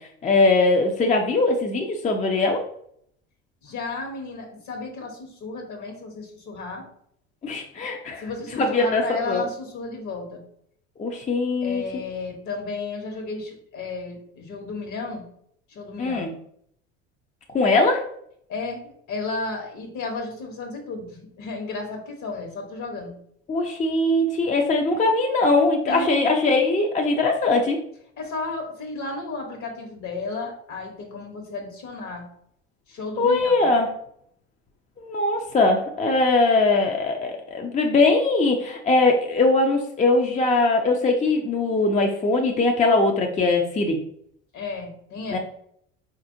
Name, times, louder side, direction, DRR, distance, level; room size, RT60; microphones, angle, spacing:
voice 1, 0.0-2.6 7.4-8.2 8.6-9.4 11.0-11.8 16.0-16.3 17.5-18.1 23.5-27.8 33.2-34.0 35.0-44.0 45.3-45.4, left 3 dB, 20° left, 2 dB, 0.5 m, -21 dB
voice 2, 3.6-6.9 8.2-10.4 11.6-15.2 15.7-16.3 18.5-23.1 25.9-26.1 28.2-32.2 32.9-33.7 44.5-45.4, left 3 dB, 55° left, 2 dB, 1.2 m, -33 dB
4.1 x 2.5 x 2.7 m, 0.68 s
hypercardioid pair, 75°, 35 cm